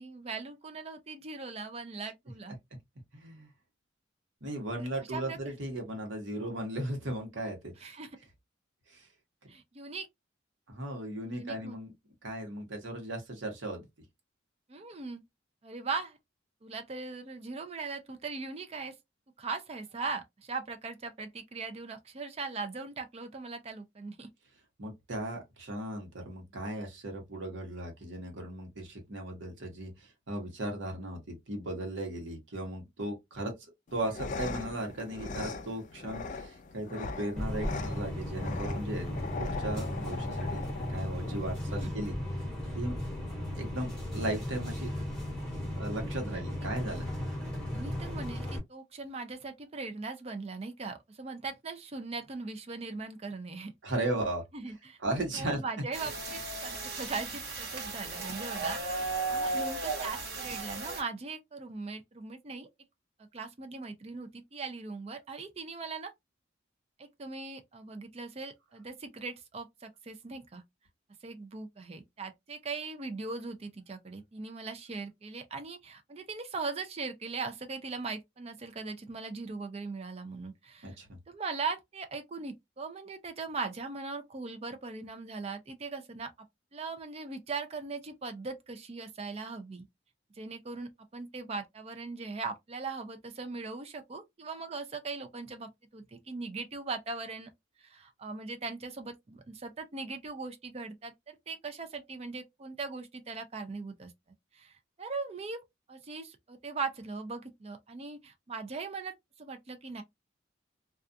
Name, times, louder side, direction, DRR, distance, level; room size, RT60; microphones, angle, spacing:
voice 1, 0.0-2.6 4.8-5.4 7.8-8.1 9.5-10.1 11.3-11.8 14.7-15.2 15.6-16.2 16.6-19.0 19.4-24.3 41.7-42.0 46.2-46.7 47.7-53.7 54.5-55.0 55.3-62.7 63.3-66.1 67.0-70.6 71.2-81.0 81.3-86.3 86.7-89.9 90.4-97.5 97.8-104.1 104.5-105.6 105.9-110.0, right 4 dB, 30° right, 0.4 m, -40 dB
voice 2, 3.1-3.5 4.4-7.9 8.9-9.1 9.4-9.5 10.7-11.9 12.2-13.9 24.8-33.5 33.9-40.6 40.9-42.2 42.7-42.9 43.5-44.9 45.8-47.1 53.8-54.4 55.0-55.6 80.8-81.2, right 1 dB, 75° right, 1.0 m, -36 dB
sound 1, 33.9-41.9, left 4 dB, 40° left, 0.3 m, -40 dB
sound 2, 37.4-48.6, left 1 dB, 5° left, 0.9 m, -36 dB
sound 3, 55.9-61.0, right 3 dB, 55° right, 1.0 m, -35 dB
2.3 x 2.3 x 2.5 m
head